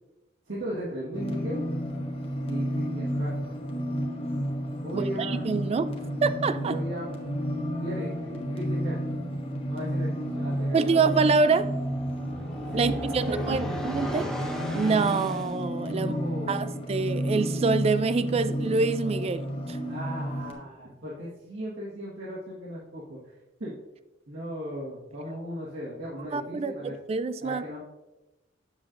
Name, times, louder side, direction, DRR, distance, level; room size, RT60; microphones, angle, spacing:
voice 1, 0.5-1.6 2.4-3.4 4.8-5.5 6.6-7.1 7.8-9.1 9.7-11.0 12.7-13.8 15.9-16.6 19.9-23.3 23.6-23.7 24.3-26.9 27.4-27.8, right 1 dB, 80° right, -7 dB, 1.5 m, -37 dB
sound 1, 1.1-20.5, equal, 30° left, 1.0 m, -31 dB
voice 2, 4.9-6.8 10.7-11.7 12.8-14.3 14.7-16.1 16.5-19.8 26.3-27.6, right 4 dB, 35° right, 13 dB, 0.3 m, -26 dB
sound 2, 10.1-15.6, left 1 dB, 5° left, 0.8 m, -37 dB
7.7 x 7.3 x 2.5 m, 0.98 s
head